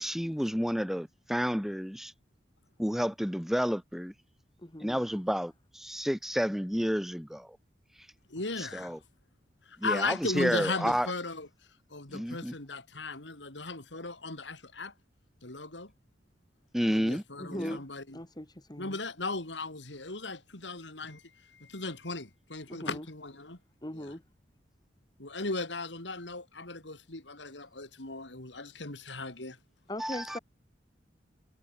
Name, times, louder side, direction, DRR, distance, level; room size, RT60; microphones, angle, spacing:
voice 1, 0.0-2.1 2.8-4.1 4.8-7.5 8.6-9.0 9.8-11.1 12.1-12.5 16.7-17.2 17.5-17.8 30.0-30.4, equal, ahead, 2.4 m, -30 dB
voice 2, 4.6-5.2 8.4-8.5 17.4-17.9 18.1-19.0 22.7-23.1 23.8-24.2 29.9-30.4, left 1 dB, 25° left, 3.1 m, -40 dB
voice 3, 8.3-8.9 9.7-11.5 11.9-14.9 15.4-15.9 16.9-18.2 18.8-21.2 21.5-23.6 23.9-24.0 25.2-29.6, left 3 dB, 85° left, 4.2 m, -37 dB
head